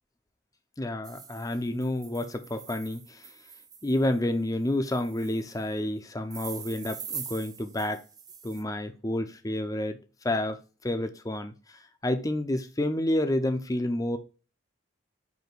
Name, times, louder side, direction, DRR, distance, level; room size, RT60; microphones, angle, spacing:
voice 1, 0.8-3.3 3.8-8.0 8.4-10.0 10.2-10.6 10.8-14.2, left 1 dB, 20° left, 0.7 m, -29 dB
sound 1, 1.0-4.2 4.8-5.6 6.3-8.6, right 7 dB, 20° right, 0.5 m, -44 dB
8.1 x 2.9 x 4.4 m
head